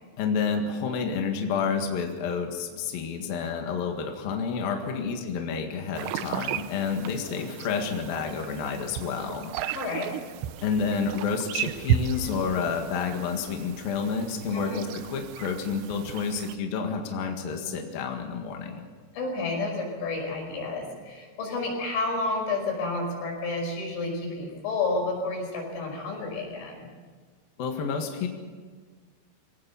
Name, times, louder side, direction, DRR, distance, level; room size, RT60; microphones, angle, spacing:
voice 1, 0.2-9.5 10.6-18.9 27.6-28.3, left 5 dB, 60° left, 3 dB, 3.2 m, -29 dB
sound 1, 5.9-16.5, right 9 dB, 75° right, 2.9 m, -34 dB
voice 2, 9.7-10.1 14.5-14.8 19.1-26.9, left 3 dB, 90° left, 0 dB, 8.1 m, -30 dB
24.0 x 18.0 x 7.1 m, 1.5 s
omnidirectional pair, 5.4 m